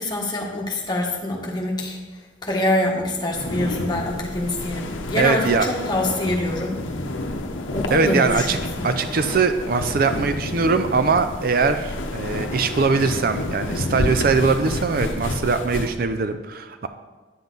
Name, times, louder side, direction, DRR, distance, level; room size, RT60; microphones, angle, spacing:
voice 1, 0.0-2.0 2.4-6.8 7.7-8.6, left 1 dB, 20° left, -2 dB, 1.3 m, -25 dB
Rubbing The Wind Screen of My Microphone, 3.3-15.9, left 2 dB, 85° left, 0.8 m, -29 dB
voice 2, 5.2-5.7 7.9-8.6 8.8-16.9, right 4 dB, 50° right, 9 dB, 0.4 m, -21 dB
9.3 x 7.2 x 3.9 m, 1.3 s
head